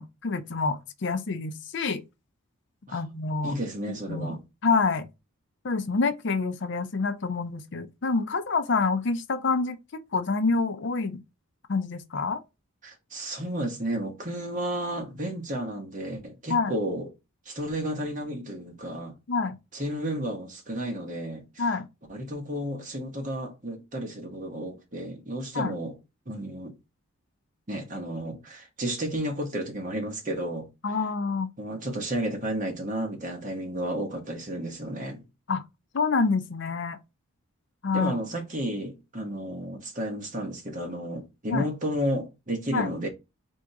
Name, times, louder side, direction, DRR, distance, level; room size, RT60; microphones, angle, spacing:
voice 1, 0.0-2.0 2.9-3.5 4.1-5.1 5.6-11.2 11.7-12.4 16.5-16.8 19.3-19.6 21.6-21.9 25.5-25.8 30.8-31.5 35.5-35.6 35.9-37.0 37.8-38.2 41.5-41.7 42.7-42.9, left 4 dB, 55° left, 0.5 m, -27 dB
voice 2, 3.4-4.4 12.8-17.1 17.4-19.1 19.7-21.7 22.1-26.0 26.3-26.7 27.7-30.7 31.6-35.2 37.9-43.1, right 1 dB, 35° right, 1.1 m, -32 dB
3.6 x 2.7 x 4.5 m
head